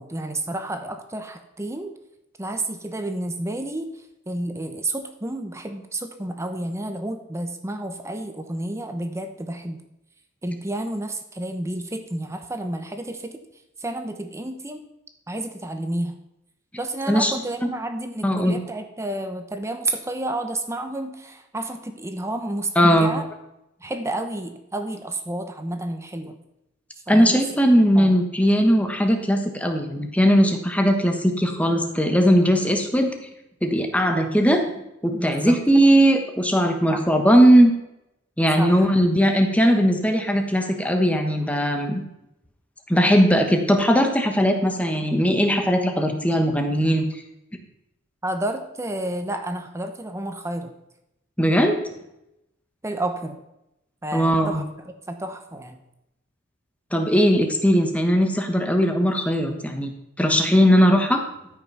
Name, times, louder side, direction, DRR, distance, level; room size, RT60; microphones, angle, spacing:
voice 1, 0.0-1.9 2.4-3.9 4.3-9.8 10.4-13.4 13.8-14.8 15.3-16.1 16.8-23.2 23.8-26.4 27.1-27.4 27.9-28.2 35.1-35.6 36.9-37.0 38.6-38.8 48.2-50.7 52.8-53.4 54.0-54.6 55.1-55.8, right 1 dB, 15° right, 7 dB, 0.8 m, -30 dB
voice 2, 18.2-18.5 22.7-23.1 27.1-33.2 33.6-34.6 35.0-37.7 38.4-42.0 42.9-47.1 51.4-51.8 54.1-54.6 56.9-59.9 60.2-61.2, equal, 5° left, 4 dB, 1.2 m, -19 dB
13.5 x 6.0 x 5.5 m, 0.86 s
head